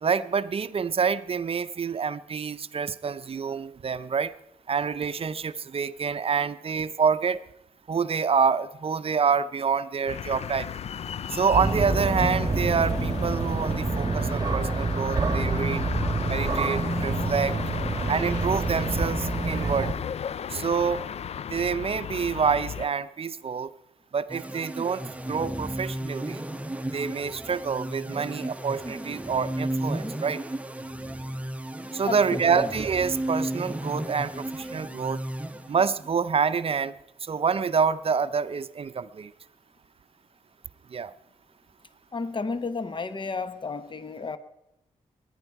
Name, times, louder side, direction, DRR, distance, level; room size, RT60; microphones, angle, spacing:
voice 1, 0.0-4.3 4.7-7.4 7.9-10.7 11.3-15.8 16.3-17.6 18.1-20.0 20.5-21.0 21.5-23.7 24.1-26.4 26.9-30.4 31.9-35.2 35.7-36.9 37.2-39.3 40.9-41.1, right 6 dB, 45° right, 0.6 m, -27 dB
russia crossroad suburbs autumn, 10.1-22.9, left 8 dB, 55° left, 0.4 m, -34 dB
sound 1, 11.5-19.9, right 4 dB, 30° right, 1.3 m, -27 dB
sound 2, 24.3-36.1, right 1 dB, 10° right, 0.9 m, -34 dB
voice 2, 32.0-32.4 42.1-44.4, left 4 dB, 40° left, 1.0 m, -32 dB
21.0 x 10.0 x 4.7 m
cardioid pair, 60°, 13 cm